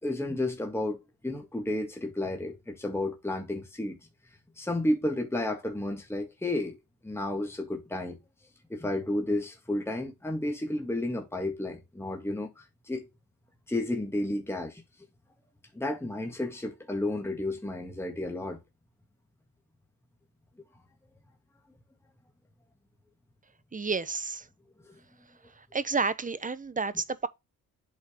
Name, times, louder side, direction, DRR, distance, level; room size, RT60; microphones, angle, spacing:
voice 1, 0.0-4.0 4.6-6.8 7.0-8.2 8.7-13.1 13.7-14.8 15.7-18.6, left 1 dB, 5° left, 1.8 m, -32 dB
voice 2, 23.7-24.5 25.6-27.3, right 4 dB, 25° right, 0.8 m, -30 dB
8.3 x 4.5 x 3.0 m
cardioid pair, 90°, 35 cm